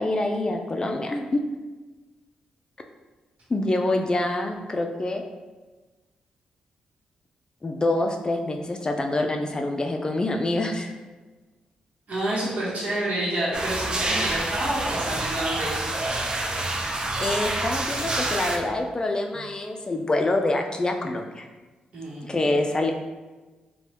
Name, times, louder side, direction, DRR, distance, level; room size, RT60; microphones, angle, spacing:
voice 1, 0.0-1.4 3.5-5.2 7.6-10.9 17.2-21.5 22.2-22.9, left 2 dB, 30° left, 3 dB, 0.3 m, -26 dB
voice 2, 12.1-15.9 21.9-22.4, right 1 dB, 65° right, -8 dB, 1.0 m, -28 dB
sound 1, 13.5-18.6, right 2 dB, 30° right, 0.4 m, -27 dB
2.9 x 2.2 x 3.2 m, 1.2 s
cardioid pair, 65°, 3 cm